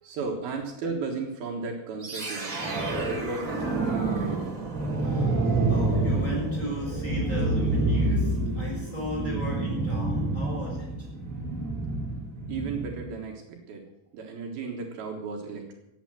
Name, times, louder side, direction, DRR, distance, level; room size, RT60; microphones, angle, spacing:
voice 1, 0.0-4.6 12.5-13.8 14.1-15.7, right 4 dB, 70° right, 1 dB, 3.3 m, -35 dB
sound 1, 2.0-13.1, right 2 dB, 25° right, 2.0 m, -28 dB
voice 2, 5.0-5.3 5.7-11.1, left 1 dB, 10° left, -5 dB, 6.9 m, -35 dB
15.0 x 8.8 x 7.6 m, 0.90 s
omnidirectional pair, 4.6 m